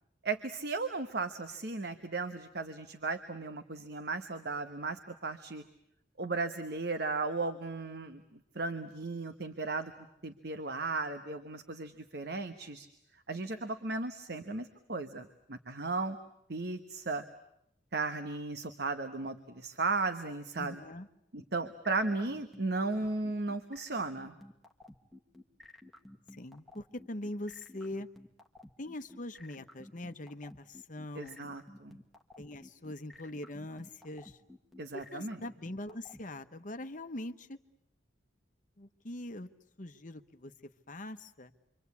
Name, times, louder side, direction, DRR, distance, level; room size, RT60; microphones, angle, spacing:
voice 1, 0.2-5.6 6.2-8.2 8.5-9.9 10.2-12.9 13.3-16.2 16.5-17.2 17.9-20.8 21.3-24.3 31.1-32.0 34.8-35.4, right 3 dB, 60° right, 8 dB, 1.2 m, -35 dB
voice 2, 20.6-21.1 26.3-28.1 28.8-31.5 32.4-34.4 34.9-37.6 38.8-39.5 39.8-40.5 40.9-41.5, left 1 dB, 45° left, 9 dB, 1.2 m, -42 dB
sound 1, 21.4-36.2, left 1 dB, ahead, 1.8 m, -52 dB
27.5 x 25.0 x 8.5 m, 0.80 s
head